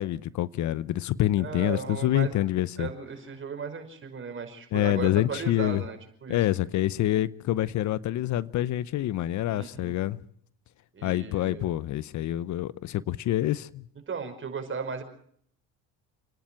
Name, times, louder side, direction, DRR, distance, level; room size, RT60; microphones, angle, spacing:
voice 1, 0.0-2.9 4.7-5.8 6.3-10.2 11.0-13.8, left 13 dB, 55° left, 0.8 m, -27 dB
voice 2, 1.4-2.4 2.8-6.6 9.5-9.9 10.9-11.7 14.1-15.0, right 5 dB, 35° right, 5.3 m, -36 dB
29.5 x 10.5 x 9.0 m
supercardioid pair, 90°, 34 cm